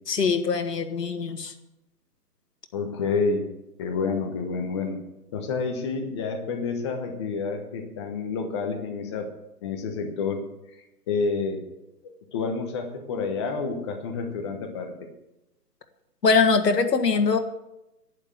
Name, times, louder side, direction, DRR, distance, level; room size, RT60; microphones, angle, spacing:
voice 1, 0.1-1.5 16.2-17.4, left 5 dB, 80° left, 7 dB, 1.9 m, -22 dB
voice 2, 2.7-3.5 3.8-5.0 5.3-9.3 9.6-10.4 10.7-11.6 12.0-14.9, left 4 dB, 15° left, 4 dB, 1.0 m, -29 dB
11.0 x 9.8 x 7.5 m, 0.92 s
hypercardioid pair, 155°, 48 cm